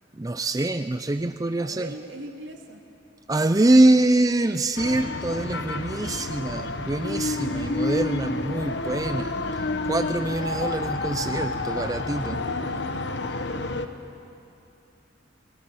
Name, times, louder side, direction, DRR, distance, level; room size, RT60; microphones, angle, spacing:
voice 1, 0.2-1.9 3.3-12.4, right 2 dB, 20° right, 9 dB, 0.4 m, -24 dB
voice 2, 1.6-2.8 3.4-3.7 7.2-7.9 12.3-12.7 13.5-13.7, right 1 dB, 75° right, 3 dB, 2.3 m, -41 dB
sound 1, 4.8-13.9, left 2 dB, 60° left, 1.1 m, -29 dB
22.0 x 19.5 x 8.8 m, 2.7 s
head